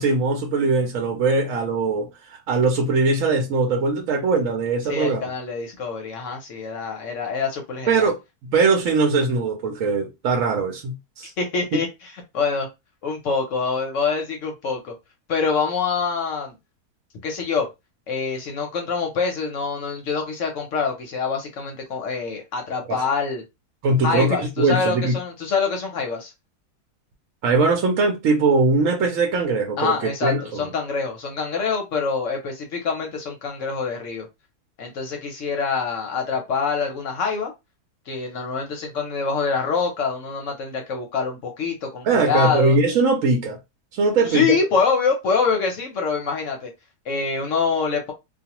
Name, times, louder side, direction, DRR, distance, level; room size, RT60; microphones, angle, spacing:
voice 1, 0.0-2.1 2.5-5.2 7.9-8.2 8.4-11.3 22.9-23.0 23.8-25.1 27.4-29.9 30.2-30.7 42.0-43.6 43.9-44.6, right 3 dB, 65° right, 0.9 m, -21 dB
voice 2, 4.9-8.1 11.4-12.7 13.0-14.9 15.3-16.5 17.2-17.7 18.1-23.4 24.0-26.3 29.8-34.3 34.8-37.5 38.1-42.8 44.2-46.7 47.1-48.1, left 5 dB, 65° left, 0.8 m, -25 dB
2.4 x 2.3 x 2.8 m
omnidirectional pair, 1.7 m